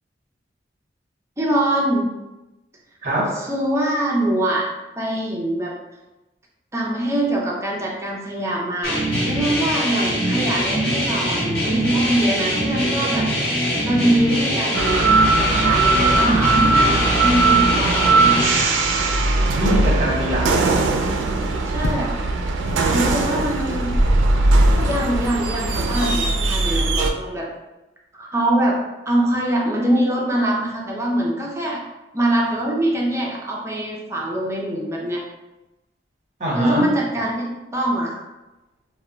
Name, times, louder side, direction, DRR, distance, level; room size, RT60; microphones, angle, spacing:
voice 1, 1.4-2.1 3.3-4.7 5.0-5.7 6.7-13.3 13.8-15.1 15.4-18.5 21.6-22.1 22.9-23.9 24.8-27.5 28.1-28.8 29.1-31.8 32.1-35.2 36.5-38.2, right 1 dB, 15° right, -3 dB, 0.4 m, -23 dB
voice 2, 3.0-3.4 19.6-20.8 36.4-36.9, equal, 40° right, -4 dB, 0.8 m, -23 dB
sound 1, 8.8-18.6, equal, 55° left, 1.0 m, -22 dB
sound 2, 14.7-27.1, right 3 dB, 85° right, 0.3 m, -19 dB
sound 3, 21.7-27.0, equal, 80° left, 0.4 m, -28 dB
2.1 x 2.1 x 3.7 m, 1.0 s
head